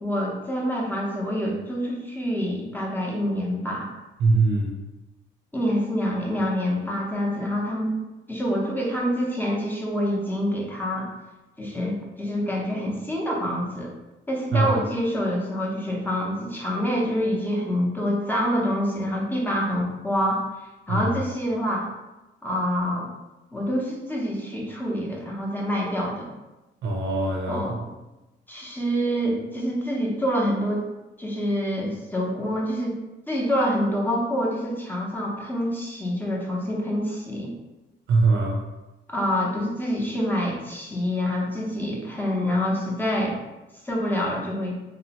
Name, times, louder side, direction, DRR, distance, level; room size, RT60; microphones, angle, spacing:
voice 1, 0.0-3.9 5.5-7.9 8.3-11.1 11.6-13.9 14.3-20.5 20.9-21.9 22.4-23.1 23.5-26.4 27.5-27.9 28.5-30.8 31.2-33.0 33.3-37.5 39.1-43.4 43.8-44.7, equal, 10° left, -3 dB, 0.6 m, -26 dB
voice 2, 4.2-4.7 14.5-14.7 20.9-21.1 26.8-27.6 38.1-38.6, right 3 dB, 65° right, 0 dB, 0.5 m, -22 dB
2.8 x 2.0 x 2.8 m, 1.0 s
cardioid pair, 90°, 20 cm